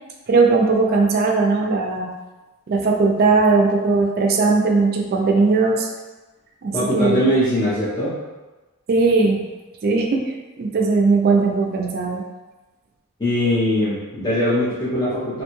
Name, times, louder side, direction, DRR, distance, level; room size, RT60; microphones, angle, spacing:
voice 1, 0.3-2.1 2.7-5.9 6.6-7.2 8.9-9.4 9.8-12.2, right 3 dB, 45° right, 1 dB, 0.4 m, -18 dB
voice 2, 6.7-8.2 13.2-15.4, left 1 dB, 20° left, -11 dB, 0.5 m, -21 dB
2.6 x 2.2 x 2.9 m, 1.2 s
head